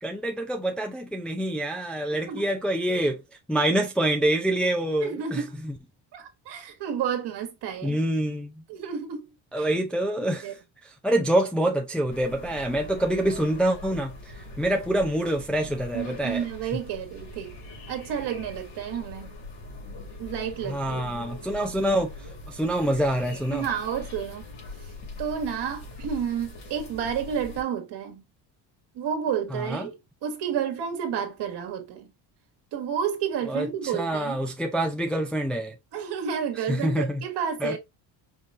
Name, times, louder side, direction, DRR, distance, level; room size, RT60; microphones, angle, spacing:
voice 1, 0.0-3.2 3.5-5.7 7.8-8.6 9.5-10.5 10.8-14.1 14.6-16.4 20.6-22.1 22.5-23.7 29.5-29.9 33.5-35.7 36.7-37.2 37.6-37.8, right 1 dB, ahead, 0.5 m, -26 dB
voice 2, 2.1-2.5 5.0-5.6 6.1-8.0 8.7-9.3 9.6-9.7 10.2-10.5 15.9-17.6 17.9-19.3 20.2-21.2 23.5-24.5 25.2-28.2 28.9-32.1 32.7-34.4 35.9-37.8, right 8 dB, 60° right, 1.5 m, -31 dB
sound 1, 12.1-27.6, left 2 dB, 70° left, 2.7 m, -42 dB
5.3 x 3.0 x 2.6 m
cardioid pair, 135°, 46 cm